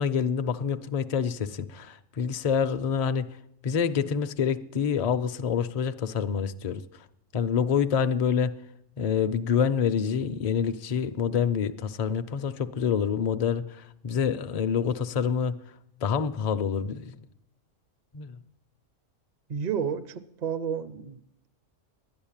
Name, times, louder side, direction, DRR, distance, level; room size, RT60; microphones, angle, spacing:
voice 1, 0.0-3.4 3.6-6.8 7.3-8.6 9.0-15.6 16.0-17.2 18.1-18.4, left 7 dB, 45° left, 0.5 m, -27 dB
voice 2, 19.5-21.2, right 7 dB, 45° right, 0.6 m, -31 dB
11.5 x 9.8 x 8.8 m
omnidirectional pair, 1.3 m